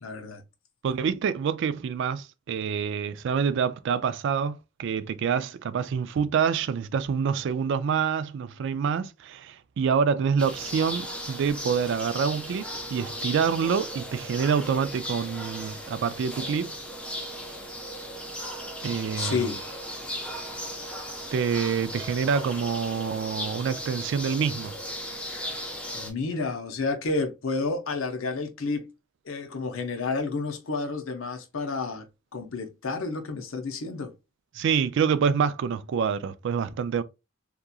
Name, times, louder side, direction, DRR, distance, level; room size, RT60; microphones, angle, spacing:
voice 1, 0.0-0.4 19.2-19.6 25.9-28.9 29.2-32.1 32.3-34.1, left 3 dB, 70° left, 0.7 m, -30 dB
voice 2, 0.8-16.8 18.8-19.5 21.3-24.7 34.5-37.0, right 6 dB, 60° right, 0.3 m, -26 dB
sound 1, 10.4-26.1, equal, 5° left, 0.5 m, -36 dB
2.8 x 2.4 x 2.3 m
head